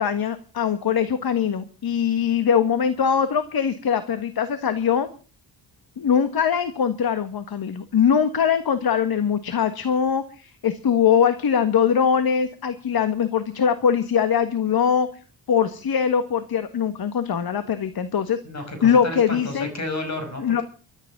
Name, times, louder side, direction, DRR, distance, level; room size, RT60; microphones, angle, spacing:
voice 1, 0.0-5.1 6.0-15.1 15.5-18.4 18.8-19.7 20.4-20.6, left 7 dB, 55° left, 10 dB, 1.7 m, -22 dB
voice 2, 18.4-20.6, left 2 dB, 35° left, 7 dB, 5.7 m, -31 dB
14.0 x 8.2 x 9.3 m, 0.40 s
cardioid pair, 95°, 44 cm